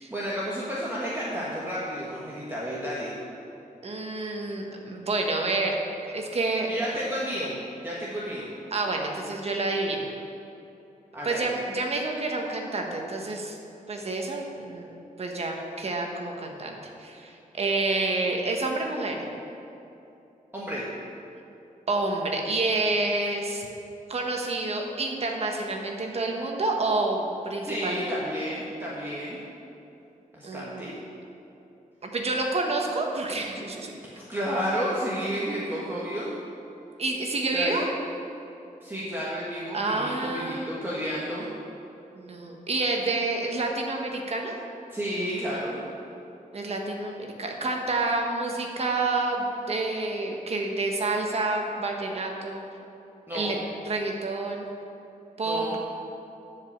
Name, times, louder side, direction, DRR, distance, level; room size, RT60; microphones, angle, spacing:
voice 1, 0.1-3.1 6.7-7.5 7.8-8.5 11.1-11.5 20.5-20.8 27.6-29.4 30.3-30.9 34.1-36.3 37.5-37.8 38.8-41.5 44.9-45.8 53.3-53.6 55.4-55.7, equal, 15° right, -7 dB, 1.4 m, -31 dB
voice 2, 3.8-5.8 6.1-6.7 8.7-10.1 11.2-13.6 13.9-14.9 15.2-19.3 21.9-23.7 24.1-28.0 30.4-30.8 32.0-33.9 37.0-37.8 39.7-40.7 42.1-44.5 46.5-52.6 53.3-53.6 53.8-54.7 55.4-55.6, right 2 dB, 45° right, 1 dB, 1.2 m, -28 dB
10.5 x 5.1 x 7.2 m, 2.8 s
wide cardioid pair, 120°, 14 cm